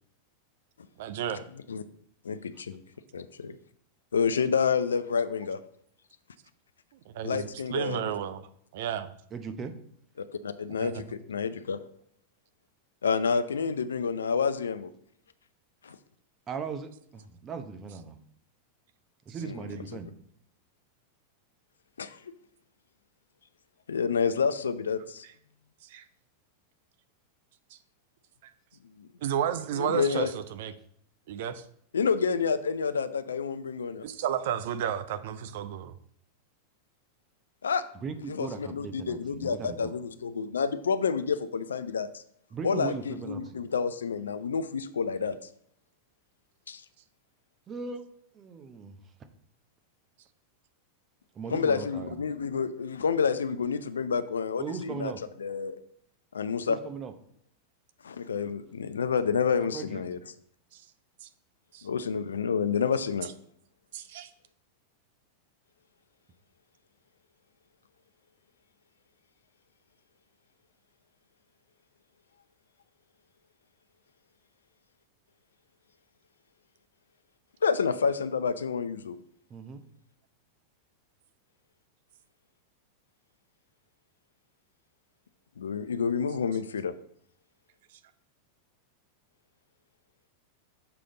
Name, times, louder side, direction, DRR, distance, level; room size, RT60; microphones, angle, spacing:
voice 1, 1.0-1.5 7.1-8.5 8.7-9.1 10.7-11.0 25.8-26.0 28.4-28.5 29.2-30.7 31.3-31.6 34.0-35.9 60.7-60.8 61.2-61.3 61.7-61.9 63.9-64.3, right 9 dB, 55° right, 11 dB, 0.5 m, -32 dB
voice 2, 2.2-2.8 3.1-3.5 4.1-5.6 7.2-8.1 10.2-11.8 13.0-14.9 15.8-16.0 19.4-19.7 22.0-22.2 23.9-25.2 29.0-29.1 29.8-30.3 31.9-34.1 37.6-37.8 38.3-42.2 42.6-45.4 46.7-46.8 51.5-55.1 55.4-55.8 56.3-56.8 58.0-60.2 61.8-63.3 77.6-79.2 85.6-86.9, left 6 dB, 70° left, 13 dB, 0.4 m, -29 dB
voice 3, 9.3-9.7 16.5-18.2 19.3-20.1 37.9-39.9 42.5-43.6 47.7-48.0 48.3-49.0 51.3-52.2 54.6-55.2 56.7-57.1 59.6-60.0 79.5-79.8, right 5 dB, 25° right, 8 dB, 0.8 m, -38 dB
6.9 x 4.9 x 3.9 m, 0.66 s
figure-of-eight pair, 90°, 0 cm